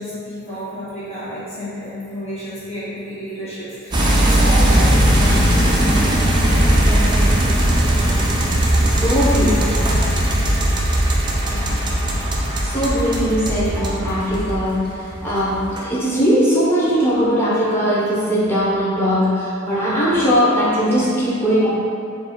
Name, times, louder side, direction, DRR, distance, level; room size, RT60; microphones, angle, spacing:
voice 1, 0.0-5.9 6.5-7.4 8.9-9.4 11.4-11.7 12.4-12.6, equal, 30° left, -12 dB, 1.5 m, -31 dB
sound 1, 3.9-14.8 15.2-15.8, right 1 dB, 20° right, 0.5 m, -18 dB
voice 2, 8.9-9.6 10.3-10.4 12.6-21.7, equal, 10° left, -9 dB, 1.1 m, -19 dB
4.5 x 2.4 x 4.4 m, 2.5 s
head